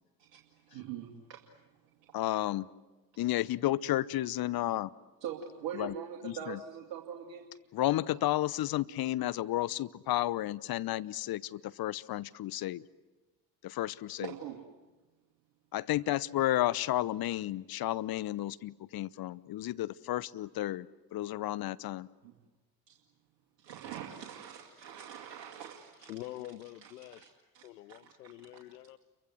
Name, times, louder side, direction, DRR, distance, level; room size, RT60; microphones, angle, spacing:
voice 1, 0.2-1.5 5.2-7.5 14.2-14.6 22.2-22.3 22.9-23.0 23.6-26.1 26.8-28.3, right 8 dB, 60° right, 2.5 m, -43 dB
voice 2, 2.1-2.7 3.2-4.9 5.7-5.9 6.2-6.6 7.7-12.8 13.6-14.3 15.7-20.9 21.1-22.1, left 14 dB, 50° left, 0.9 m, -32 dB
voice 3, 26.0-27.4 27.6-29.0, left 15 dB, 80° left, 0.8 m, -46 dB
29.0 x 24.0 x 7.9 m
figure-of-eight pair, 50°, 48 cm